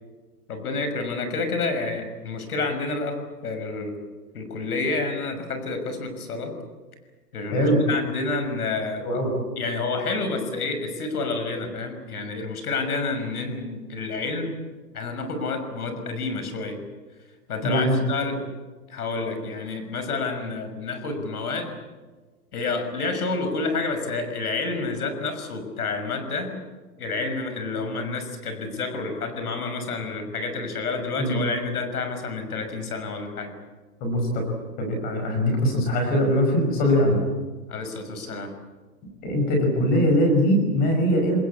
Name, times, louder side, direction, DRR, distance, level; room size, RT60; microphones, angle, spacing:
voice 1, 0.5-3.2 3.4-4.0 4.3-6.5 7.3-9.1 9.6-14.5 14.9-16.8 17.5-18.4 18.9-21.7 22.5-26.6 27.0-33.5 37.7-38.5, left 3 dB, 70° left, 8 dB, 6.0 m, -29 dB
voice 2, 17.6-18.0 31.2-31.4 34.0-34.4 34.8-37.2 39.2-41.4, equal, 20° left, 4 dB, 5.5 m, -21 dB
26.0 x 21.0 x 8.4 m, 1.3 s
hypercardioid pair, 180°, 47 cm